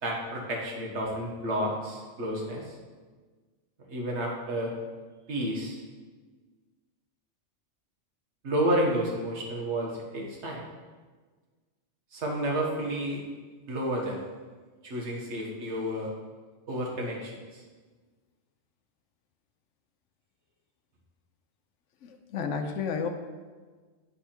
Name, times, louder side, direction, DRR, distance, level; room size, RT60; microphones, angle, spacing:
voice 1, 0.0-2.7 3.9-4.7 5.3-5.8 8.4-10.6 12.1-13.2 13.7-14.2 14.8-16.1 16.7-17.6, right 1 dB, 70° right, -2 dB, 1.6 m, -30 dB
voice 2, 22.0-23.1, left 6 dB, 90° left, 6 dB, 1.0 m, -31 dB
8.4 x 3.4 x 4.3 m, 1.4 s
omnidirectional pair, 1.2 m